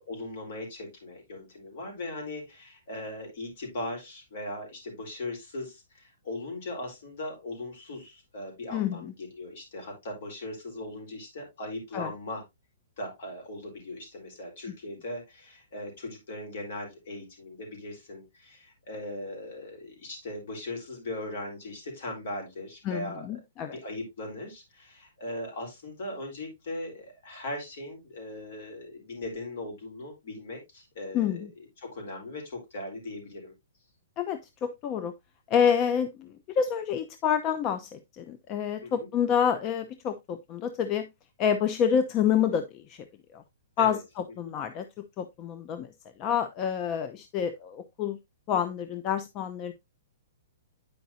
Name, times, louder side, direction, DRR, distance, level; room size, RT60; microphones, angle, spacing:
voice 1, 0.0-12.4 13.0-23.3 23.6-31.5 31.8-33.5 38.8-39.1 43.8-44.0, left 1 dB, 55° left, 4.1 m, -39 dB
voice 2, 8.7-9.1 11.9-12.1 22.8-23.8 31.1-31.5 34.2-35.1 35.5-41.1 41.4-43.0 43.3-43.4 43.8-45.9 46.2-48.2 48.5-49.7, left 8 dB, 25° left, 0.5 m, -28 dB
9.3 x 5.2 x 2.7 m
hypercardioid pair, 160°, 0 cm